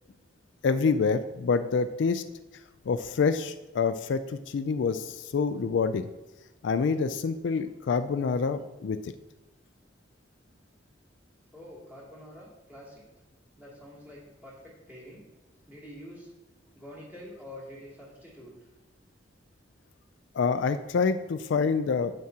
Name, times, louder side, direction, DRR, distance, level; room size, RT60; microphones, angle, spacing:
voice 1, 0.6-2.2 2.9-6.1 6.6-9.1 20.3-22.1, left 5 dB, 65° left, 11 dB, 0.4 m, -27 dB
voice 2, 11.5-13.0 13.6-15.2 15.7-16.3 16.7-18.5, left 1 dB, 10° right, -6 dB, 2.6 m, -46 dB
9.4 x 7.6 x 2.8 m, 1.1 s
head